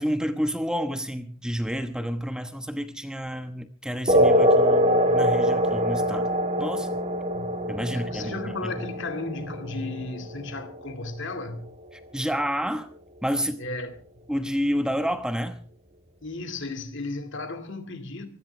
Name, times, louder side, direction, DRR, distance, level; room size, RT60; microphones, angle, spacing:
voice 1, 0.0-6.3 6.6-6.9 7.7-8.8 12.1-12.9 13.2-13.6 14.3-15.6, equal, 5° right, 1.1 m, -29 dB
sound 1, 4.1-11.1, equal, 30° right, 1.4 m, -23 dB
voice 2, 7.9-11.7 13.6-13.9 16.2-18.3, left 2 dB, 60° left, 2.2 m, -34 dB
24.0 x 16.5 x 3.3 m
head